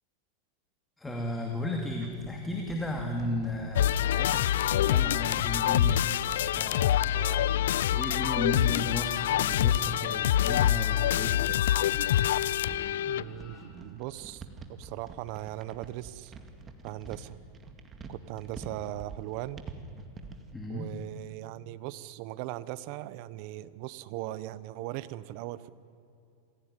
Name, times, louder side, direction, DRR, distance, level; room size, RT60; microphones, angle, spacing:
voice 1, 1.0-6.0 6.5-7.2 7.9-11.4 20.5-20.9, left 1 dB, 10° left, 1 dB, 2.4 m, -34 dB
sound 1, 1.6-20.6, right 4 dB, 20° right, 2.1 m, -48 dB
sound 2, 3.8-13.2, left 12 dB, 80° left, 0.5 m, -26 dB
sound 3, 5.6-13.7, left 3 dB, 55° left, 5.7 m, -53 dB
voice 2, 7.1-7.5 13.0-16.3 16.8-17.4 18.1-19.6 20.7-25.7, right 15 dB, 55° right, 16 dB, 1.0 m, -39 dB
27.0 x 16.5 x 9.9 m, 2.6 s
supercardioid pair, 140°, 0 cm